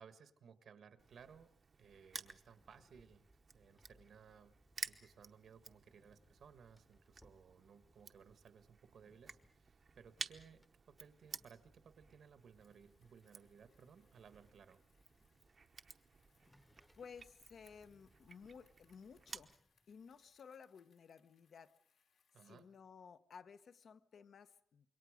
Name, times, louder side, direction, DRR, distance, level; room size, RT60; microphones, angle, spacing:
voice 1, 0.0-1.5 1.8-3.3 3.5-4.5 4.8-14.8 22.3-22.7, right 6 dB, 65° right, 10 dB, 1.5 m, -61 dB
Crushing, 1.0-19.5, right 5 dB, 40° right, 0.9 m, -54 dB
sound 1, 2.3-20.4, left 1 dB, 10° left, 1.0 m, -74 dB
Bicycle, 12.3-22.8, left 6 dB, 80° left, 2.8 m, -80 dB
voice 2, 16.9-19.5 19.9-21.7 22.4-24.9, left 6 dB, 60° left, 10 dB, 1.0 m, -56 dB
27.0 x 23.0 x 5.1 m, 0.64 s
wide cardioid pair, 155°, 0 cm